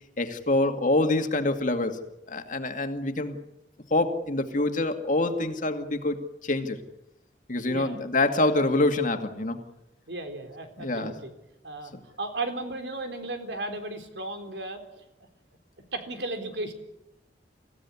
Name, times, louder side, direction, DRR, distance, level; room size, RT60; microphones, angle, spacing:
voice 1, 0.2-2.0 2.3-3.4 3.9-6.8 7.5-9.6 10.8-11.1, left 2 dB, 50° left, 6 dB, 2.3 m, -26 dB
voice 2, 7.7-8.0 10.1-11.3 11.6-15.0 15.9-16.7, right 2 dB, 85° right, 6 dB, 3.8 m, -35 dB
25.5 x 15.5 x 9.7 m, 0.92 s
head